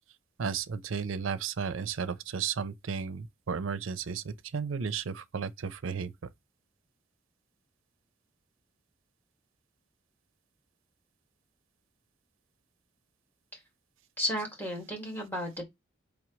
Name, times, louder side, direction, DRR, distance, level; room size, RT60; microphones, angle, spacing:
voice 1, 0.4-6.3, right 6 dB, 80° right, 0.5 m, -34 dB
voice 2, 14.2-15.6, left 1 dB, 10° left, 2.1 m, -33 dB
6.1 x 5.1 x 3.1 m
head